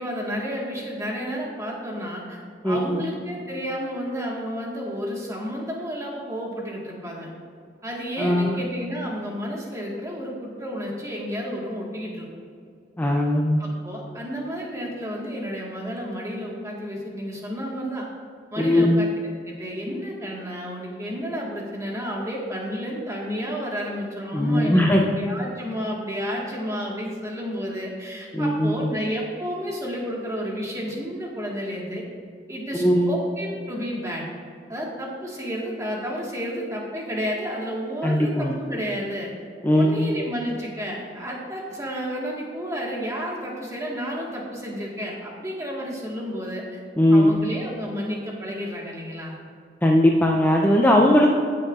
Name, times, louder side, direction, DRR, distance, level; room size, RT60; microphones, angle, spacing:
voice 1, 0.0-7.3 7.8-12.3 13.6-18.1 18.5-19.1 19.4-32.0 32.5-34.3 34.7-39.3 39.7-46.8 47.1-49.4, equal, 15° right, -2 dB, 1.5 m, -31 dB
voice 2, 2.6-3.0 8.2-8.6 13.0-13.6 18.6-19.0 24.3-25.2 28.3-28.7 32.7-33.1 38.0-38.5 39.6-40.1 47.0-47.4 49.8-51.3, left 1 dB, 10° left, -1 dB, 0.5 m, -19 dB
15.0 x 6.5 x 2.4 m, 2.3 s
head